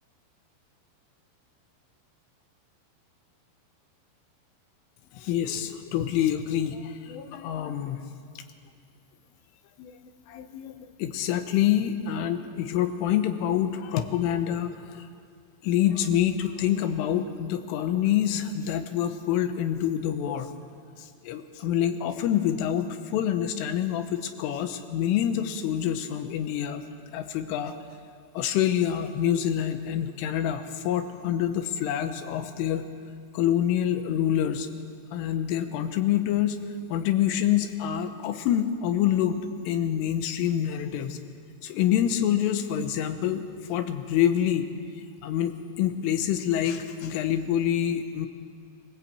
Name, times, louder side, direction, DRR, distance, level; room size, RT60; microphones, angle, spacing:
voice 1, 5.1-8.0 9.8-10.0 10.3-15.1 15.6-20.5 21.0-26.8 27.1-27.7 28.4-32.9 33.3-34.7 35.1-36.6 36.9-41.2 41.6-44.7 45.2-48.3, left 10 dB, 85° left, 8 dB, 3.7 m, -26 dB
25.5 x 17.5 x 8.4 m, 2.2 s
omnidirectional pair, 5.8 m